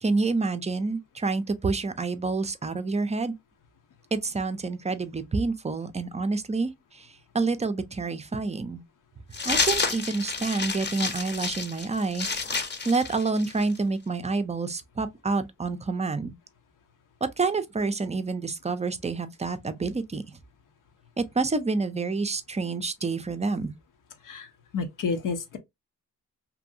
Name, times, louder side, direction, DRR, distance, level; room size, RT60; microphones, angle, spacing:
voice 1, 0.0-3.3 4.1-7.1 7.3-8.8 9.5-12.3 12.9-16.3 17.4-20.2 21.2-23.7, right 3 dB, 20° right, 0.4 m, -28 dB
sound 1, 9.3-13.8, left 4 dB, 35° left, 0.7 m, -29 dB
voice 2, 24.2-25.6, left 5 dB, 80° left, 0.8 m, -30 dB
2.7 x 2.6 x 2.5 m
cardioid pair, 75°, 31 cm